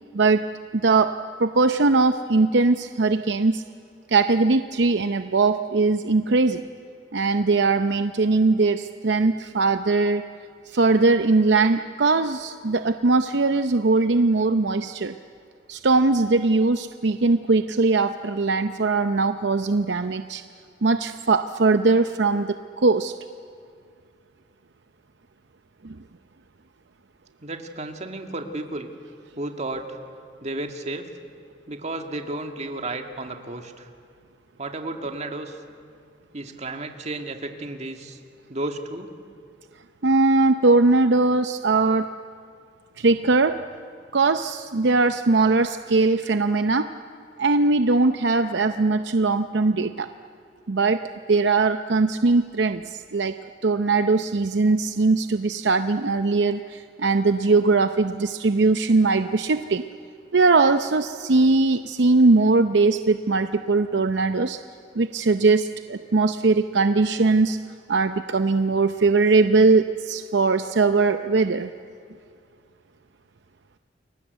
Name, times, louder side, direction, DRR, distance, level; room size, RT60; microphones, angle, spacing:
voice 1, 0.7-1.1 1.4-3.6 4.1-6.6 7.1-10.3 10.7-15.1 15.7-20.4 20.8-23.1 25.8-25.9 40.0-42.1 43.0-43.6 44.1-46.9 47.4-50.1 50.7-51.0 51.3-53.3 53.6-59.8 60.3-64.6 65.0-67.6 67.9-71.7, right 3 dB, 65° right, 9 dB, 0.7 m, -20 dB
voice 2, 27.4-28.9 29.4-30.0 30.4-31.1 31.7-33.9 34.6-35.6 36.3-38.2 38.5-39.1, right 2 dB, 40° right, 5 dB, 2.1 m, -33 dB
29.5 x 22.0 x 8.2 m, 2.3 s
head